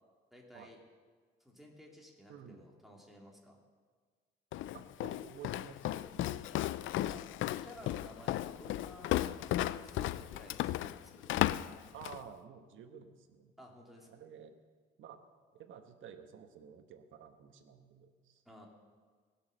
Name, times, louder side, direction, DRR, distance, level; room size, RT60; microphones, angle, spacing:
voice 1, 0.3-0.8 1.4-3.6 6.9-7.2 7.6-11.4 13.6-14.1 18.4-18.7, equal, ahead, -1 dB, 2.8 m, -55 dB
voice 2, 2.3-2.7 4.7-6.5 11.9-13.5 14.1-14.6 15.0-15.2 15.5-18.4, right 7 dB, 80° right, 7 dB, 1.3 m, -52 dB
Walk footsteps, 4.5-12.3, left 14 dB, 75° left, 0.4 m, -35 dB
19.0 x 6.7 x 6.5 m, 1.5 s
cardioid pair, 90°, 20 cm